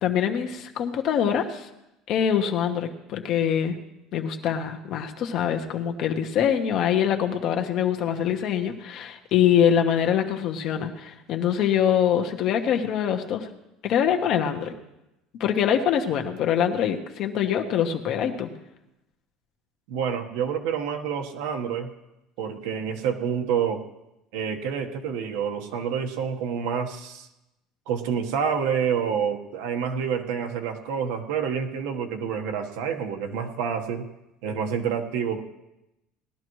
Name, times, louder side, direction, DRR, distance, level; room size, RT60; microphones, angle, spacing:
voice 1, 0.0-1.7 2.1-3.7 4.1-13.5 13.8-14.7 15.4-18.5, left 9 dB, 45° left, 4 dB, 1.2 m, -24 dB
voice 2, 19.9-21.9 22.4-23.8 24.3-27.3 27.9-34.1 34.4-35.4, right 7 dB, 80° right, 4 dB, 1.3 m, -28 dB
19.0 x 12.0 x 3.2 m, 0.92 s
cardioid pair, 160°, 0 cm